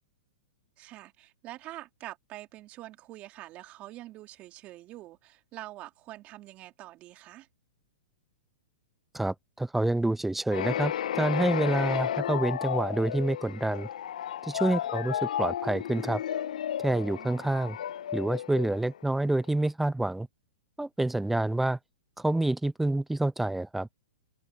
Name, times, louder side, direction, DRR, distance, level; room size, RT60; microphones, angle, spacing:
voice 1, 0.8-7.5 16.9-17.5, right 16 dB, 35° right, 3.3 m, -46 dB
voice 2, 9.1-13.9 14.4-16.2 16.8-17.8 18.1-20.3 20.8-21.8 22.2-23.9, right 2 dB, 5° right, 0.3 m, -28 dB
sound 1, 10.5-19.3, left 10 dB, 70° left, 1.0 m, -33 dB
open air
hypercardioid pair, 120°, 4 cm